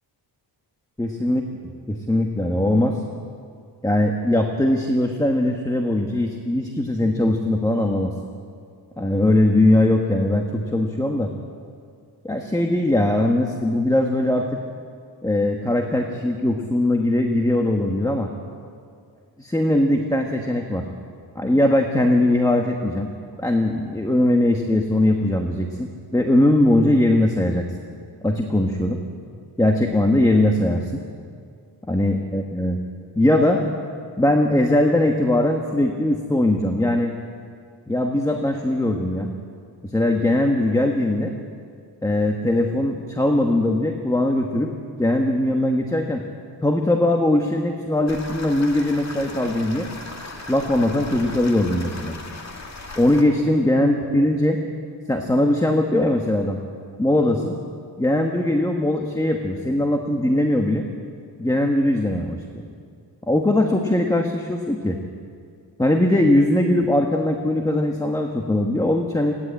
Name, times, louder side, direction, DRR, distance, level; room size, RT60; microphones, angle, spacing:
voice 1, 1.0-1.4 1.9-3.0 3.8-8.1 9.0-11.3 12.2-14.6 15.2-18.3 19.4-20.9 21.3-23.1 23.4-27.6 28.2-29.0 29.6-31.0 31.9-32.8 33.2-33.6 34.2-37.1 37.9-39.3 39.8-41.3 42.0-44.7 45.0-46.2 46.6-49.9 50.5-52.2 53.0-54.6 55.1-56.6 57.0-57.6 58.0-60.9 61.4-62.6 63.3-65.0 65.8-69.3, left 1 dB, 10° left, 3 dB, 1.2 m, -20 dB
sound 1, 48.1-53.2, left 3 dB, 40° left, 2.3 m, -37 dB
20.0 x 16.0 x 8.9 m, 2.3 s
wide cardioid pair, 145°, 44 cm